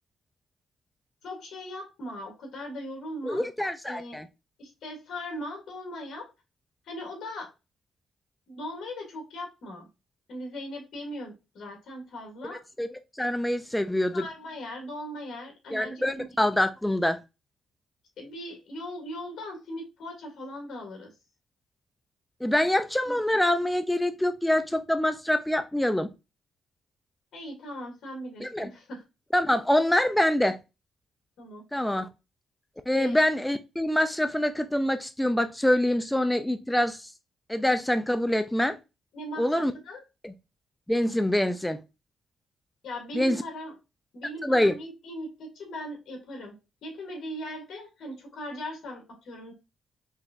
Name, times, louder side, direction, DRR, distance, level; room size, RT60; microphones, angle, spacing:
voice 1, 1.2-3.5 3.9-4.2 4.6-6.3 6.9-7.5 8.5-9.9 10.3-12.6 14.1-16.3 18.2-21.1 23.0-23.2 27.3-29.0 31.4-31.6 32.9-33.2 39.1-40.0 42.8-43.7 44.1-46.5 46.8-49.5, left 1 dB, 70° left, 2.1 m, -39 dB
voice 2, 3.2-4.3 12.5-14.2 15.7-17.2 22.4-26.1 28.4-28.7 29.3-30.6 31.7-32.1 32.9-37.1 37.5-38.8 39.4-39.7 40.2-40.3 40.9-41.8 43.1-43.4 44.4-44.8, left 1 dB, 10° left, 0.5 m, -25 dB
4.8 x 3.5 x 2.6 m
supercardioid pair, 55°, 0 cm